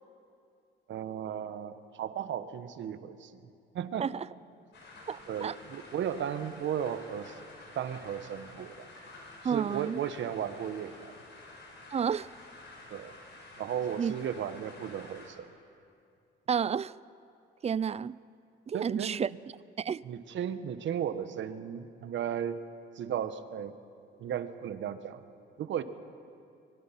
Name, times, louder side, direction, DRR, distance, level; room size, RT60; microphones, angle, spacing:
voice 1, 0.9-3.4 3.7-4.1 5.3-7.3 7.7-8.9 9.4-11.2 12.9-13.1 13.6-15.5 18.7-19.2 20.0-22.6 22.9-23.7 24.2-25.2 25.6-25.8, right 9 dB, 70° right, 1.2 m, -35 dB
sound 1, 4.7-15.3, left 2 dB, 65° left, 5.1 m, -50 dB
voice 2, 5.1-5.5 9.4-10.0 11.9-12.3 14.0-14.1 16.5-16.9 17.6-18.2 18.7-19.3 19.8-20.0, right 7 dB, 30° right, 0.4 m, -30 dB
24.5 x 21.5 x 5.8 m
cardioid pair, 90°, 20 cm